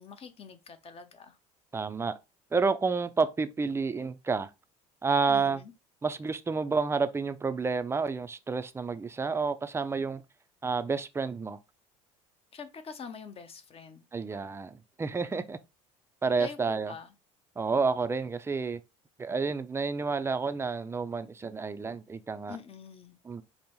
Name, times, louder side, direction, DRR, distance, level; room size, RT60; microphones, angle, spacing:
voice 1, 0.0-1.4 5.3-5.7 12.5-14.1 16.4-17.1 22.5-23.2, left 6 dB, 35° left, 0.7 m, -45 dB
voice 2, 1.7-2.2 2.5-4.5 5.0-5.6 6.0-10.2 10.6-11.6 14.1-15.6 16.2-16.9 17.6-18.8 19.2-22.6 23.2-23.4, right 4 dB, 15° right, 0.4 m, -30 dB
5.2 x 2.0 x 3.0 m
hypercardioid pair, 75°, 17 cm